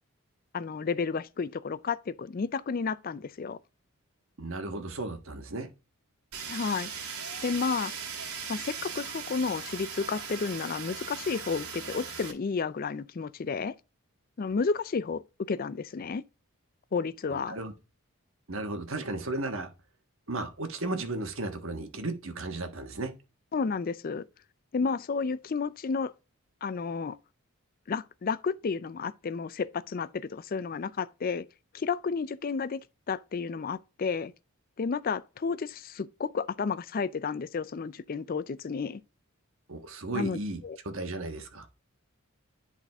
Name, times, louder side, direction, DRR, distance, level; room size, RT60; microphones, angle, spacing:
voice 1, 0.5-3.6 6.5-6.9 7.4-7.9 8.5-13.7 14.4-16.2 16.9-17.6 23.5-24.2 24.7-26.1 26.6-27.2 27.9-31.4 31.7-32.8 33.1-34.3 34.8-39.0 40.1-40.4 40.6-40.8, left 5 dB, 40° left, 0.4 m, -31 dB
voice 2, 4.4-5.7 17.3-17.7 18.5-19.7 20.3-23.1 39.7-41.7, right 2 dB, 60° right, 1.5 m, -35 dB
Fire, 6.3-12.3, right 6 dB, 80° right, 2.0 m, -39 dB
10.5 x 4.1 x 3.5 m
head